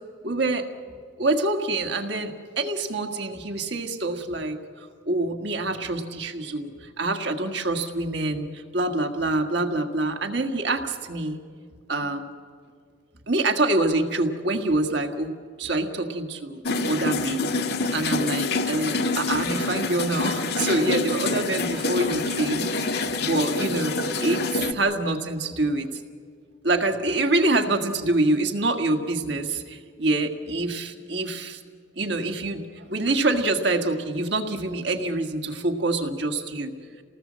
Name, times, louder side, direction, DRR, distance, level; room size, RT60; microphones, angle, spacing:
voice 1, 0.2-0.6 1.2-2.3 2.6-4.6 5.1-6.7 7.0-8.4 8.7-10.8 11.1-11.4 11.9-12.3 13.3-15.3 15.6-16.6 16.9-17.4 17.9-24.4 24.7-25.9 26.6-29.6 30.0-31.6 32.0-32.6 32.9-36.7, right 2 dB, 60° right, 5 dB, 1.9 m, -25 dB
sound 1, 16.7-24.7, left 3 dB, 55° left, 1.1 m, -26 dB
28.5 x 18.5 x 7.6 m, 2.1 s
head